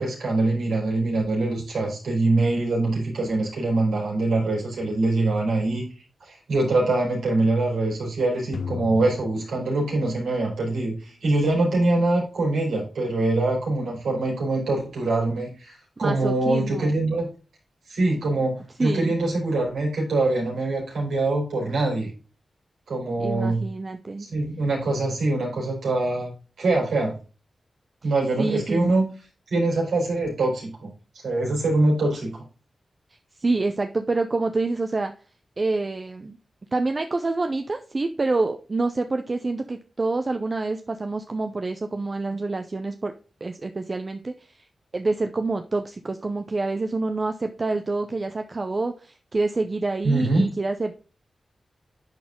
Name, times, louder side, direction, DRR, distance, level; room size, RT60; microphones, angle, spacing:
voice 1, 0.0-5.8 6.2-17.3 17.9-22.1 22.9-23.6 24.2-26.3 26.6-27.2 28.0-29.1 29.5-30.9 31.2-32.4 50.0-50.5, right 2 dB, 85° right, -3 dB, 4.5 m, -24 dB
sound 1, 8.5-10.7, left 6 dB, 65° left, 0.7 m, -36 dB
voice 2, 16.0-16.9 18.8-19.2 23.2-24.3 28.4-28.8 33.4-35.1 35.6-36.4 36.7-43.1 43.4-44.6 44.9-51.0, right 3 dB, 45° right, 6 dB, 0.7 m, -27 dB
10.5 x 4.2 x 3.7 m, 0.36 s
cardioid pair, 50°, 0 cm